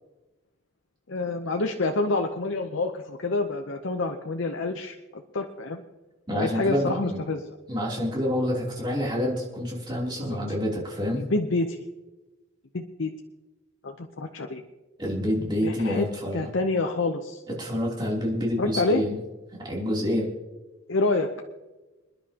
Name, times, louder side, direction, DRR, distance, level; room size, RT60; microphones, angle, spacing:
voice 1, 1.1-5.8 6.4-7.6 10.2-10.4 11.2-11.8 12.7-13.1 13.8-14.6 15.6-16.1 16.3-17.4 18.6-19.0 20.9-21.3, left 3 dB, 75° left, 4 dB, 0.8 m, -27 dB
voice 2, 6.3-7.2 7.7-11.2 15.0-16.5 17.5-19.1 19.6-20.3, left 1 dB, 20° right, -3 dB, 3.1 m, -27 dB
26.5 x 10.5 x 2.9 m, 1.1 s
head